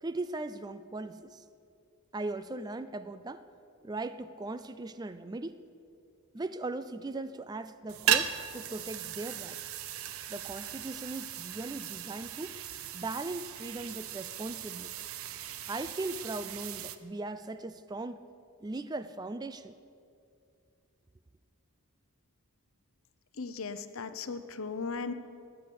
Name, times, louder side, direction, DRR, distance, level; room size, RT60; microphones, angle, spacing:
voice 1, 0.0-1.4 2.1-3.5 3.8-5.6 6.3-9.8 10.3-12.6 12.9-14.9 15.7-18.2 18.6-19.7, right 2 dB, 20° right, 13 dB, 0.4 m, -38 dB
sound 1, 7.9-17.0, right 10 dB, 65° right, 0.7 m, -36 dB
voice 2, 23.4-25.1, left 4 dB, 60° left, 11 dB, 0.8 m, -37 dB
20.0 x 8.5 x 7.0 m, 2.5 s
head